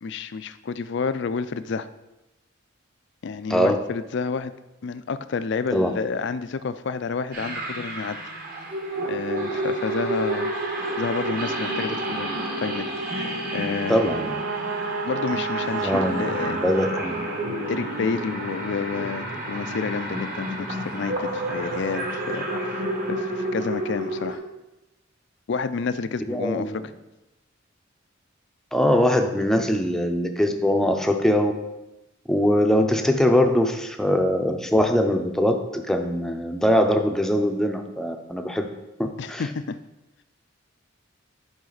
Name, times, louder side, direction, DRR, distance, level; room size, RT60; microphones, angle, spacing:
voice 1, 0.0-1.9 3.2-4.5 4.8-8.2 9.1-10.5 11.0-12.9 13.2-14.0 15.0-16.6 17.7-22.5 22.7-22.8 23.1-24.4 25.5-26.7 39.2-39.8, left 5 dB, 60° left, 13 dB, 0.4 m, -29 dB
voice 2, 3.5-3.8 5.7-5.9 13.9-14.4 15.8-17.3 26.3-26.8 28.7-31.5 32.3-38.7 39.0-39.4, equal, ahead, 4 dB, 0.6 m, -22 dB
sound 1, 7.3-24.4, right 1 dB, 45° right, 1.5 m, -30 dB
Brass instrument, 13.4-17.8, right 4 dB, 75° right, 0.4 m, -32 dB
10.5 x 5.1 x 4.0 m, 0.98 s
head